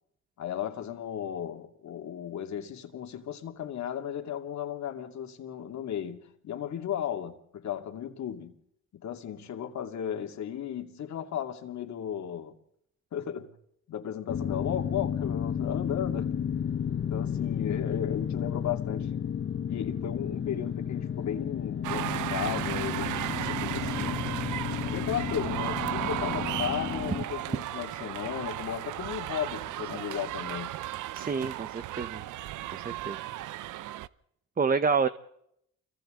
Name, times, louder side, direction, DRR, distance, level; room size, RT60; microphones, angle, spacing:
voice 1, 0.4-8.5 8.9-12.5 13.1-13.5 13.9-16.3 17.0-19.2 19.7-24.3 24.9-30.8, left 9 dB, 65° left, 2.6 m, -35 dB
sound 1, 14.3-27.3, left 8 dB, 40° left, 0.7 m, -32 dB
sound 2, 21.8-34.1, right 14 dB, 80° right, 0.7 m, -35 dB
voice 2, 31.1-32.2 32.7-33.2 34.6-35.1, right 5 dB, 30° right, 1.0 m, -28 dB
29.0 x 24.0 x 3.9 m
cardioid pair, 90°, 30 cm